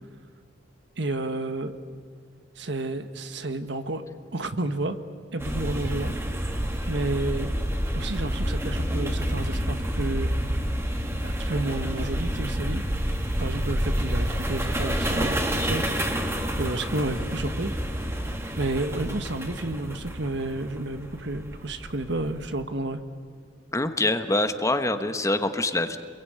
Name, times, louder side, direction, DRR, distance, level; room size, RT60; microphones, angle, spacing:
voice 1, 1.0-1.8 2.6-4.0 4.3-5.0 5.3-7.5 7.9-10.3 10.9-12.8 13.4-17.7 18.6-23.0, right 2 dB, 70° right, 8 dB, 1.5 m, -31 dB
sound 1, 5.4-22.6, equal, 15° right, 2.3 m, -29 dB
voice 2, 23.7-26.0, left 2 dB, 15° left, 8 dB, 1.2 m, -25 dB
28.0 x 22.5 x 9.4 m, 2.1 s
head